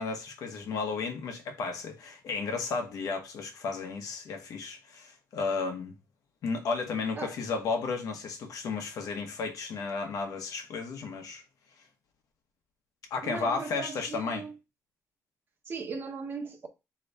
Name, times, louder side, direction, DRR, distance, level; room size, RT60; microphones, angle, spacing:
voice 1, 0.0-5.9 6.4-11.4 13.1-14.4, left 4 dB, 80° left, 1.0 m, -33 dB
voice 2, 13.2-14.5 15.7-16.7, right 4 dB, 40° right, 0.8 m, -38 dB
4.1 x 3.0 x 3.3 m
wide cardioid pair, 165°, 6 cm